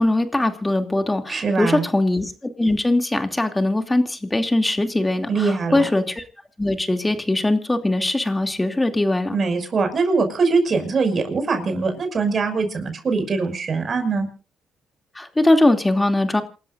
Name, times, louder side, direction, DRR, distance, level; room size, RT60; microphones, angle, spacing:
voice 1, 0.0-2.3 2.6-6.2 6.6-9.4 15.2-16.4, left 1 dB, 15° left, 6 dB, 2.9 m, -21 dB
voice 2, 1.3-1.9 5.3-5.9 9.3-14.3, right 4 dB, 45° right, 6 dB, 6.2 m, -22 dB
28.0 x 13.5 x 2.7 m, 0.36 s
cardioid pair, 90°, 0 cm